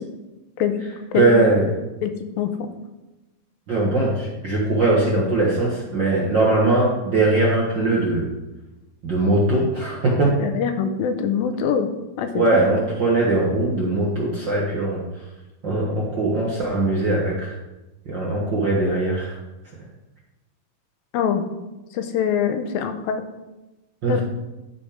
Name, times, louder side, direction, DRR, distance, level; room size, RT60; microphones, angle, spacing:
voice 1, 1.1-1.7 3.7-8.3 9.0-10.4 12.3-15.0 15.6-17.5 18.1-19.3 24.0-24.2, right 2 dB, 55° right, -4 dB, 1.2 m, -20 dB
voice 2, 2.4-2.7 10.4-11.9 12.2-12.6 21.1-21.4 21.9-23.2 24.1-24.2, left 7 dB, 85° left, 7 dB, 2.6 m, -23 dB
12.0 x 5.2 x 5.0 m, 1.1 s
omnidirectional pair, 4.2 m